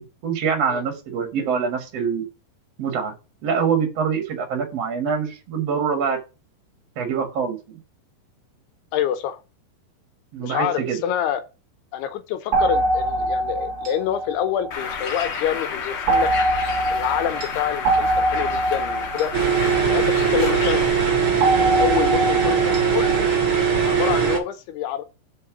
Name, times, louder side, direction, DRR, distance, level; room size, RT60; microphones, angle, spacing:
voice 1, 0.0-2.2 2.8-3.1 3.4-6.2 6.9-7.8 10.3-11.0, right 6 dB, 65° right, 1.6 m, -25 dB
voice 2, 8.9-9.4 10.4-11.4 11.9-16.3 16.9-19.3 19.8-20.9 21.8-23.3 23.9-25.0, left 10 dB, 80° left, 2.6 m, -27 dB
sound 1, 12.5-15.3 16.1-20.6 21.4-23.2, right 1 dB, 90° right, 1.1 m, -24 dB
Bird, 14.7-21.0, left 6 dB, 60° left, 1.4 m, -31 dB
sound 2, 19.3-24.4, right 7 dB, 40° right, 1.9 m, -20 dB
5.4 x 5.1 x 5.9 m
omnidirectional pair, 4.9 m